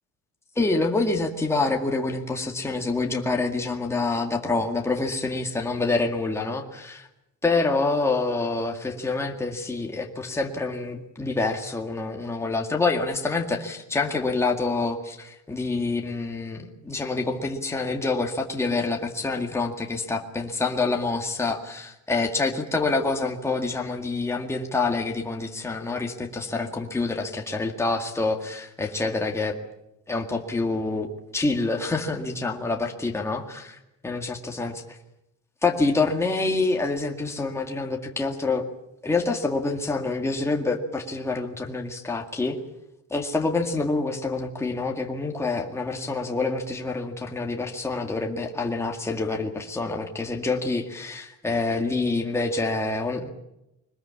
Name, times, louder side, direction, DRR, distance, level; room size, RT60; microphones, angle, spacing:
voice 1, 0.6-7.1 7.4-29.6 30.1-31.1 31.3-33.8 34.0-34.8 35.6-38.6 39.0-42.6 43.1-53.3, left 3 dB, 10° left, 2 dB, 2.0 m, -27 dB
22.5 x 20.0 x 8.5 m, 0.87 s
cardioid pair, 170°, 29 cm